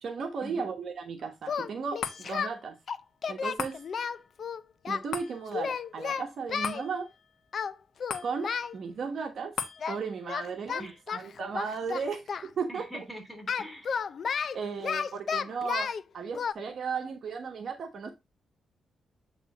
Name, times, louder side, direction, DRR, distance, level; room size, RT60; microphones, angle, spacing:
voice 1, 0.0-2.8 3.2-3.8 4.9-7.1 8.2-9.5 9.9-12.2 12.6-13.0 14.5-18.1, right 5 dB, 60° right, 1.1 m, -35 dB
Singing, 1.4-2.5 2.9-5.0 5.5-6.8 7.5-7.7 8.0-8.7 9.8-10.0 10.3-12.5 13.5-16.0 16.3-16.5, left 6 dB, 55° left, 0.4 m, -32 dB
sound 1, 2.0-14.6 15.0-15.1, left 7 dB, 80° left, 1.1 m, -44 dB
voice 2, 10.8-11.2 12.7-14.1, equal, ahead, 3.4 m, -44 dB
8.3 x 3.3 x 4.0 m
cardioid pair, 105°, 0 cm